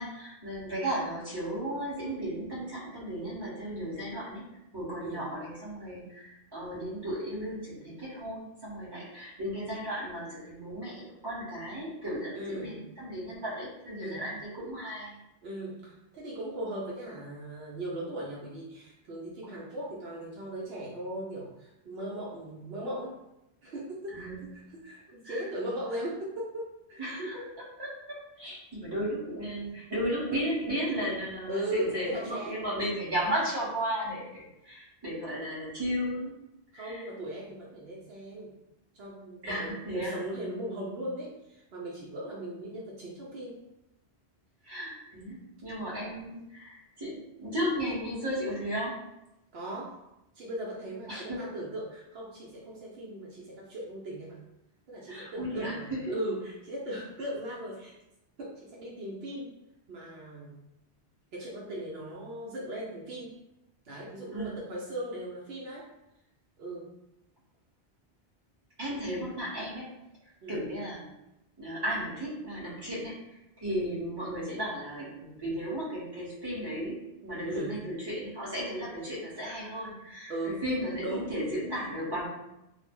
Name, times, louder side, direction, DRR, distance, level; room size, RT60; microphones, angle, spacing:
voice 1, 0.0-4.4 4.7-15.2 24.1-24.7 25.2-25.4 27.0-36.3 36.7-37.1 39.4-40.2 44.6-49.0 51.1-51.5 55.1-56.1 64.3-64.6 68.8-69.9 70.5-71.1 71.6-80.3 80.6-82.3, equal, 25° right, -6 dB, 0.9 m, -35 dB
voice 2, 12.3-12.8 14.0-14.2 15.4-23.2 23.6-27.1 31.5-32.7 36.7-38.5 38.9-43.6 49.5-49.9 50.3-54.4 54.9-57.9 58.4-59.5 59.9-60.6 61.3-63.3 63.9-65.9 66.6-66.9 70.4-70.6 77.4-77.7 80.3-80.6 81.0-81.3, right 1 dB, 70° right, -4 dB, 0.8 m, -38 dB
2.4 x 2.0 x 3.4 m, 0.88 s
omnidirectional pair, 1.1 m